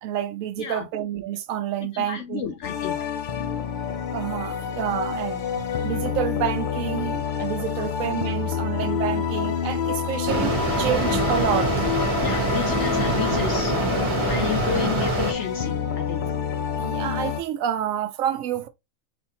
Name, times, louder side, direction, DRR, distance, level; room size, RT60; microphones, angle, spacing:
voice 1, 0.0-2.5 4.1-5.4 5.8-10.5 10.8-11.9 16.7-18.7, right 10 dB, 75° right, 1.0 m, -28 dB
voice 2, 0.6-0.9 1.8-3.0 7.7-7.9 12.2-16.2, left 8 dB, 65° left, 0.8 m, -32 dB
sound 1, 2.6-17.4, left 7 dB, 85° left, 0.4 m, -28 dB
Mechanisms, 10.3-15.3, right 2 dB, 25° right, 0.9 m, -24 dB
4.3 x 3.5 x 2.9 m
omnidirectional pair, 1.5 m